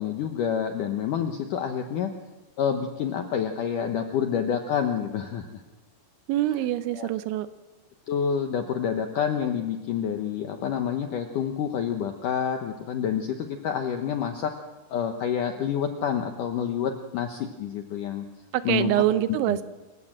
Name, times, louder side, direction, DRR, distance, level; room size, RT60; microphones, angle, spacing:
voice 1, 0.0-2.1 2.6-5.6 7.0-7.1 8.1-14.5 14.9-18.3 18.6-18.9 19.5-19.6, left 8 dB, 75° left, 5 dB, 1.9 m, -28 dB
voice 2, 6.3-7.5 18.5-19.6, right 13 dB, 85° right, 12 dB, 3.2 m, -25 dB
27.5 x 15.5 x 7.5 m, 1.2 s
omnidirectional pair, 5.3 m